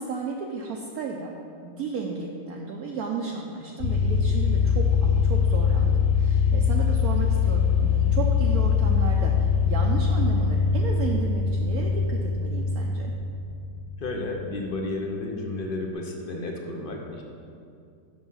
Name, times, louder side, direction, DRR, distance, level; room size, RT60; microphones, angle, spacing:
voice 1, 0.0-1.4 1.6-13.1, right 4 dB, 70° right, 0 dB, 1.0 m, -33 dB
sound 1, 3.8-14.5, left 6 dB, 90° left, 1.3 m, -23 dB
voice 2, 14.0-17.2, left 2 dB, 50° left, 1 dB, 0.6 m, -32 dB
6.9 x 6.2 x 5.6 m, 2.4 s
omnidirectional pair, 1.9 m